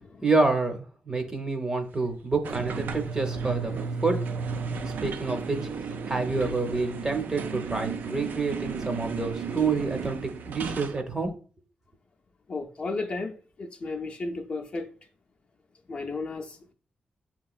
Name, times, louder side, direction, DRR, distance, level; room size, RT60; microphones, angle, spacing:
voice 1, 0.2-3.7 4.0-4.2 4.7-5.6 6.1-11.3, right 3 dB, 20° right, 0.6 m, -28 dB
sound 1, 2.4-11.0, right 5 dB, 75° right, 0.3 m, -34 dB
voice 2, 12.5-13.3 13.6-14.9 15.9-16.7, left 3 dB, 40° left, 0.5 m, -34 dB
5.5 x 2.9 x 2.3 m
wide cardioid pair, 125°, 3 cm